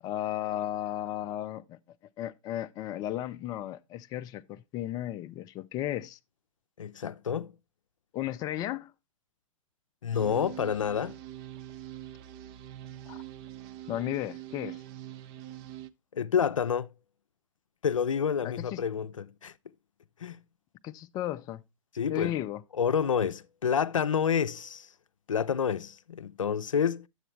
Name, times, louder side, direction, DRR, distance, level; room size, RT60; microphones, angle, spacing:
voice 1, 0.0-1.8 2.2-6.2 8.1-8.9 13.1-13.2 13.9-14.8 18.4-18.8 20.8-21.6 22.1-22.6, left 13 dB, 20° left, 0.5 m, -34 dB
voice 2, 6.8-7.5 10.0-11.2 16.1-16.9 17.8-19.5 20.2-20.4 21.9-22.4 22.8-24.9 25.3-27.1, left 7 dB, 70° left, 0.5 m, -28 dB
sound 1, 10.1-15.9, right 13 dB, 30° right, 0.5 m, -44 dB
11.0 x 8.0 x 3.1 m
figure-of-eight pair, 110°, 17 cm